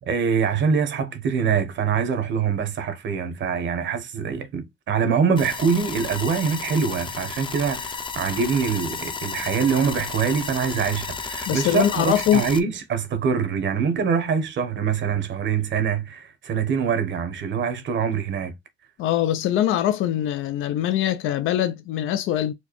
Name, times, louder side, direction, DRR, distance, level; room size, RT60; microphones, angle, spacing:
voice 1, 0.0-18.5, right 6 dB, 65° right, 1.0 m, -24 dB
sound 1, 5.4-12.6, left 5 dB, 25° left, 0.5 m, -33 dB
voice 2, 11.5-12.4 19.0-22.5, left 11 dB, 90° left, 0.5 m, -22 dB
4.4 x 2.2 x 2.9 m
cardioid pair, 90°, 20 cm